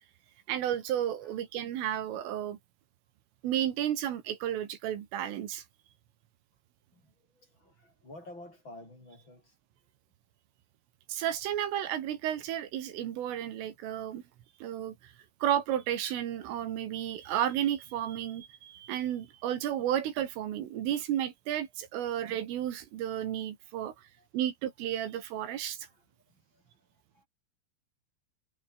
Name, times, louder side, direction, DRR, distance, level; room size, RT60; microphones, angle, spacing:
voice 1, 0.5-2.6 3.4-5.6 11.1-14.2 14.6-15.1 15.4-23.9 24.3-25.9, right 11 dB, 75° right, 4.7 m, -32 dB
voice 2, 6.9-9.6 23.8-24.3 25.8-27.3, left 1 dB, 20° left, 8.4 m, -52 dB
omnidirectional pair, 5.8 m